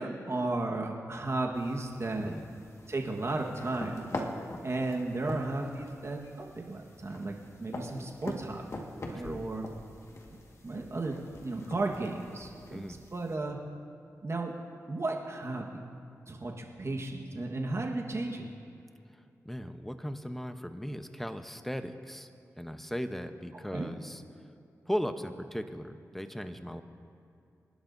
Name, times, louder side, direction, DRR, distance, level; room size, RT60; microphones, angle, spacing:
voice 1, 0.0-2.3 2.9-4.1 4.6-7.3 7.6-8.6 9.1-9.7 10.6-11.2 11.4-12.8 13.1-13.6 14.2-14.5 14.9-15.8 16.3-18.5 23.7-23.9, right 2 dB, 50° right, 0 dB, 1.4 m, -34 dB
sound 1, 1.5-13.4, left 1 dB, 50° left, 1.7 m, -44 dB
voice 2, 9.1-9.5 12.7-13.0 19.1-22.3 22.6-24.2 24.9-26.8, equal, 5° left, 8 dB, 0.8 m, -37 dB
26.5 x 11.5 x 2.7 m, 2.6 s
cardioid pair, 55°, 6 cm